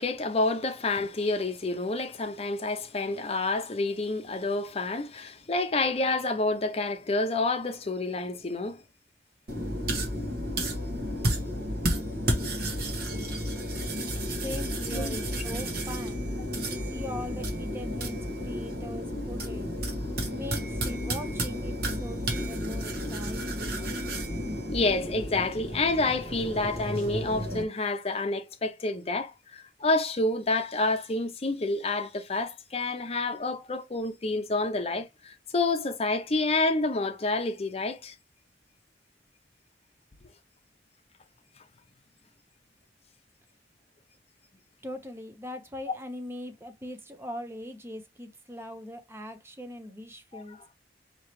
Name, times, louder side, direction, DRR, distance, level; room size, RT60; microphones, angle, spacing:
voice 1, 0.0-8.8 12.4-12.5 13.1-13.3 14.9-15.2 24.7-38.1 50.3-50.4, left 2 dB, 35° left, 0.7 m, -29 dB
sound 1, 9.5-27.6, equal, 60° right, 1.3 m, -32 dB
voice 2, 14.4-16.2 16.7-19.8 20.3-23.9 44.8-50.6, left 1 dB, 15° right, 0.7 m, -40 dB
4.6 x 2.9 x 3.0 m
head